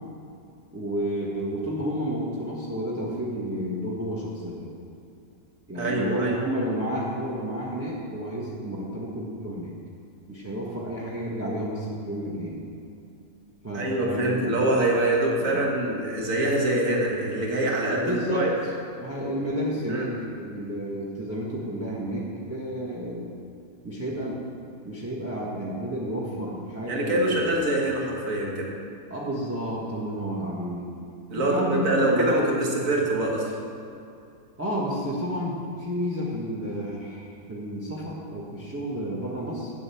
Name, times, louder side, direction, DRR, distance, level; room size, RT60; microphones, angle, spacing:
voice 1, 0.7-4.7 5.7-9.7 10.3-12.6 13.6-14.6 15.4-15.6 18.0-18.4 19.0-23.3 23.8-24.4 24.8-27.8 29.1-30.9 31.3-32.4 34.6-39.7, equal, 10° right, -4 dB, 1.2 m, -31 dB
voice 2, 5.7-6.4 13.7-18.5 19.9-20.1 26.9-28.7 31.3-33.4, right 1 dB, 50° right, -2 dB, 2.2 m, -24 dB
8.8 x 8.1 x 7.1 m, 2.6 s
omnidirectional pair, 1.8 m